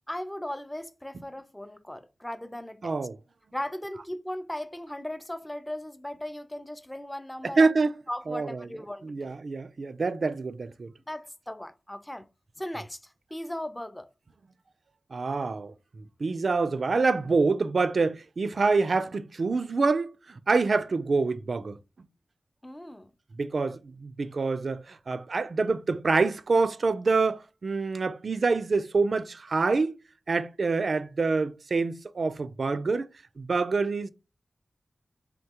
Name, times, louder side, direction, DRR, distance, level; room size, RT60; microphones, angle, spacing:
voice 1, 0.0-3.0 3.5-7.8 8.1-9.3 11.1-12.3 12.6-14.1 22.6-23.1, left 1 dB, 15° left, 0.4 m, -37 dB
voice 2, 2.8-3.2 7.4-7.9 8.3-8.6 9.0-10.9 15.1-15.7 16.2-20.1 20.5-21.8 23.4-30.0 30.3-33.1 33.4-34.1, right 4 dB, 65° right, 0.3 m, -26 dB
3.8 x 3.5 x 2.8 m
wide cardioid pair, 70°, 0 cm